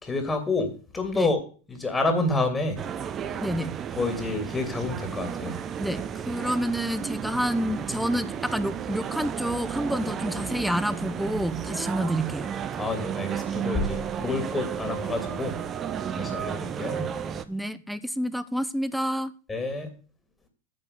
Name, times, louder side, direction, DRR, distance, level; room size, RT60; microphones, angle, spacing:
voice 1, 0.0-1.4 1.7-2.8 4.0-5.6 12.8-15.5 16.1-17.0 19.5-19.9, left 3 dB, 20° left, 6 dB, 2.9 m, -28 dB
sound 1, 2.8-17.4, right 8 dB, 35° right, 1.1 m, -33 dB
voice 2, 3.4-3.7 5.8-12.5 17.5-19.3, equal, ahead, 14 dB, 1.1 m, -28 dB
9.3 x 5.4 x 8.2 m, 0.38 s
figure-of-eight pair, 85°, 0 cm